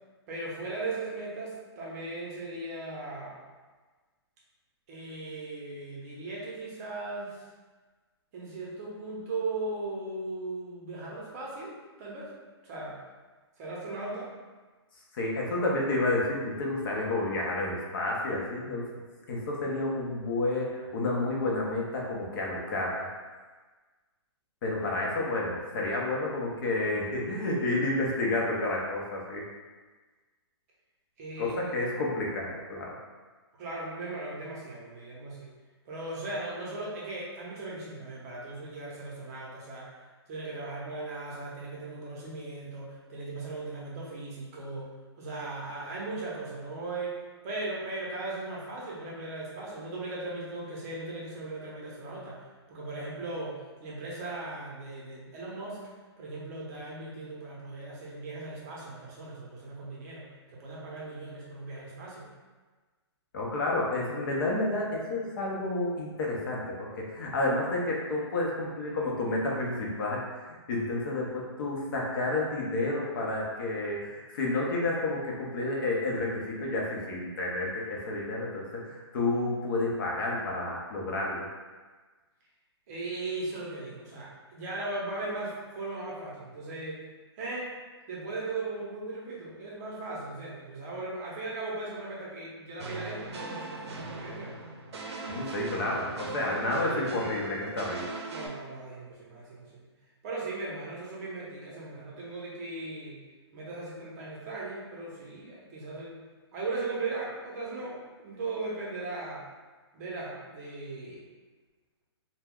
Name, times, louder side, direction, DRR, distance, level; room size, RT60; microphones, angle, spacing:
voice 1, 0.3-3.4 4.9-7.4 8.3-12.3 12.6-13.0 13.6-14.3 31.2-31.7 33.6-35.5 35.9-39.9 40.3-47.2 47.4-52.4 52.7-55.8 56.2-62.3 82.9-87.0 87.4-87.7 88.1-94.5 96.4-97.4 98.3-99.9 100.2-103.2 103.5-106.2 106.5-109.5 109.9-111.2, right 2 dB, 35° right, -4 dB, 0.7 m, -38 dB
voice 2, 15.1-18.9 19.3-23.1 24.6-29.4 31.4-32.9 63.3-81.5 95.3-98.1, left 2 dB, 50° left, -3 dB, 0.7 m, -30 dB
sound 1, 92.8-98.5, right 2 dB, 70° right, 0.5 m, -40 dB
2.2 x 2.1 x 3.5 m, 1.3 s
hypercardioid pair, 150°, 14 cm